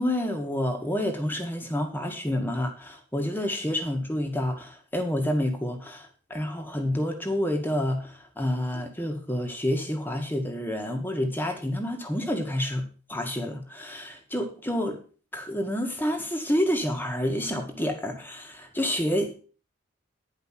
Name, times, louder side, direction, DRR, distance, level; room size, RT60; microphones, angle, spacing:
voice 1, 0.0-15.0 15.3-19.3, left 1 dB, 10° left, 4 dB, 1.8 m, -29 dB
10.5 x 5.4 x 7.5 m, 0.39 s
head